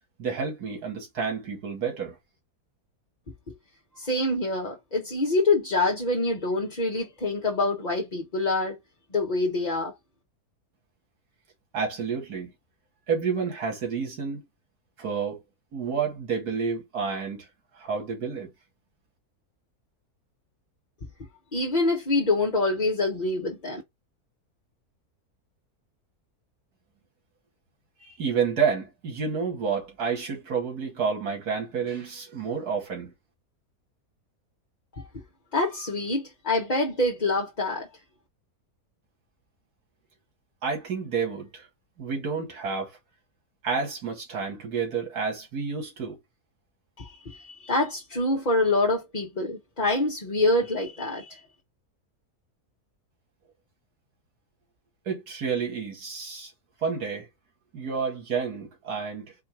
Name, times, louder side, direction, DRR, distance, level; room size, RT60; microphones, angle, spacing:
voice 1, 0.2-2.2 11.7-12.5 13.1-14.4 15.0-15.4 15.7-17.5 17.7-18.5 28.0-33.1 40.6-41.7 42.0-43.0 43.6-46.2 55.1-56.5 56.8-57.3 57.7-59.3, right 6 dB, 85° right, 2.4 m, -29 dB
voice 2, 4.0-8.8 9.1-9.9 21.5-23.8 35.5-37.9 47.0-51.4, left 2 dB, 35° left, 0.9 m, -26 dB
4.6 x 2.5 x 4.4 m
omnidirectional pair, 1.6 m